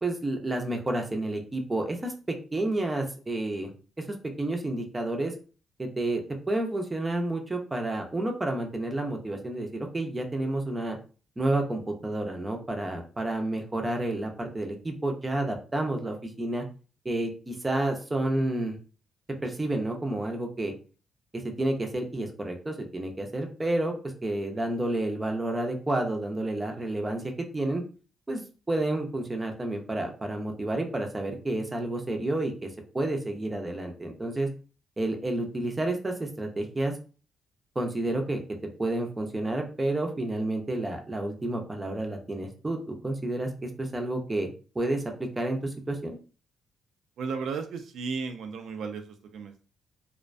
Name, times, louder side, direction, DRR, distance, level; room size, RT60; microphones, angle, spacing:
voice 1, 0.0-3.7 4.0-5.3 5.8-11.0 11.4-16.6 17.0-18.8 19.4-20.7 21.3-23.9 24.2-27.2 27.5-27.8 28.3-28.4 28.7-32.7 32.9-34.5 35.0-36.9 37.8-38.4 38.8-44.5 44.7-46.2, right 1 dB, 15° right, 3 dB, 0.5 m, -30 dB
voice 2, 47.2-49.6, right 5 dB, 75° right, 6 dB, 0.3 m, -35 dB
2.4 x 2.1 x 2.4 m, 0.37 s
cardioid pair, 115°, 0 cm